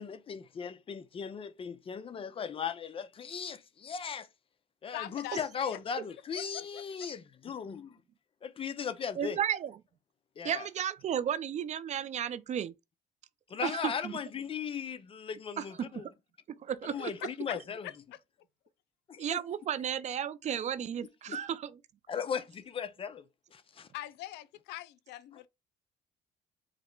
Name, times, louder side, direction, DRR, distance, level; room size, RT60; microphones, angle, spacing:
voice 1, 0.0-4.3 4.8-7.9 8.4-9.4 10.4-10.7 13.5-16.1 16.8-17.8 19.1-19.4 21.3-21.4 22.1-23.2 23.5-23.9, left 7 dB, 35° left, 0.6 m, -37 dB
voice 2, 4.9-5.8 6.4-6.7 16.9-18.2 23.9-25.5, left 14 dB, 85° left, 0.4 m, -43 dB
voice 3, 9.2-9.7 10.4-12.7 13.6-14.1 15.6-16.1 16.6-17.1 19.2-21.7, right 9 dB, 45° right, 0.4 m, -33 dB
4.9 x 2.1 x 4.5 m
cardioid pair, 110°, 17 cm